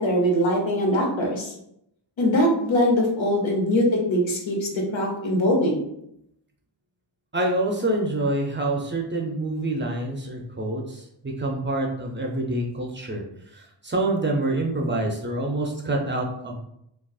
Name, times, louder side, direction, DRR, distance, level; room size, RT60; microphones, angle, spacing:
voice 1, 0.0-1.5 2.2-5.8, equal, 90° left, 0 dB, 0.9 m, -22 dB
voice 2, 7.3-13.2 13.8-16.6, right 2 dB, 25° right, 0 dB, 0.5 m, -26 dB
3.9 x 2.3 x 2.3 m, 0.77 s
wide cardioid pair, 140°, 45 cm